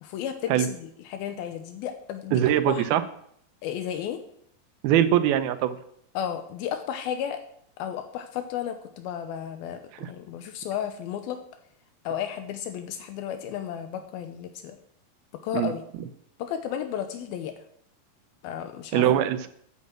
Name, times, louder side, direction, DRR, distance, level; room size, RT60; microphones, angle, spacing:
voice 1, 0.0-2.9 3.6-4.2 6.1-7.4 7.8-11.4 12.0-14.8 15.4-15.8 16.4-17.5 18.4-19.0, left 9 dB, 80° left, 7 dB, 2.6 m, -33 dB
voice 2, 2.3-3.0 4.8-5.8 10.0-10.1 15.5-15.7 18.9-19.5, right 11 dB, 80° right, 12 dB, 2.6 m, -22 dB
9.6 x 8.7 x 7.5 m, 0.68 s
omnidirectional pair, 4.4 m